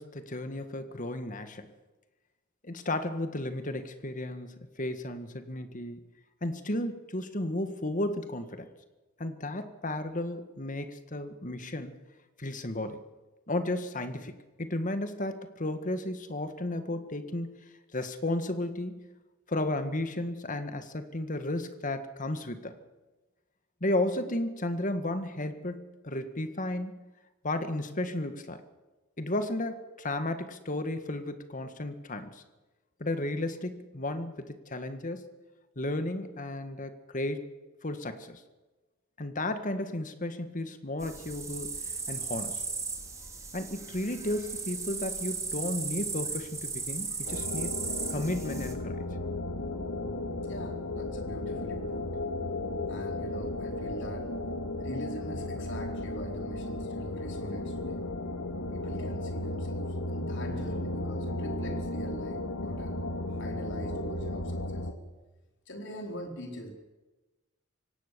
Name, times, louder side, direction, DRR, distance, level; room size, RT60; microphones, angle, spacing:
voice 1, 0.0-1.7 2.6-6.1 6.4-8.7 9.2-12.0 12.4-13.0 13.5-17.5 17.9-19.1 19.5-22.8 23.8-27.0 27.4-28.6 29.2-32.4 33.0-35.2 35.8-37.5 37.8-38.4 39.2-42.6 43.5-47.7 48.1-49.0, left 1 dB, 40° left, 9 dB, 1.8 m, -33 dB
sound 1, 41.0-48.7, right 4 dB, 15° right, 3.1 m, -36 dB
sound 2, 47.3-64.9, left 2 dB, 85° left, 2.2 m, -35 dB
voice 2, 50.4-52.1 52.9-54.3 54.8-58.0 58.7-63.0 63.4-64.9 65.7-66.7, right 1 dB, 60° left, 3 dB, 4.6 m, -42 dB
25.0 x 17.5 x 7.0 m, 1.1 s
head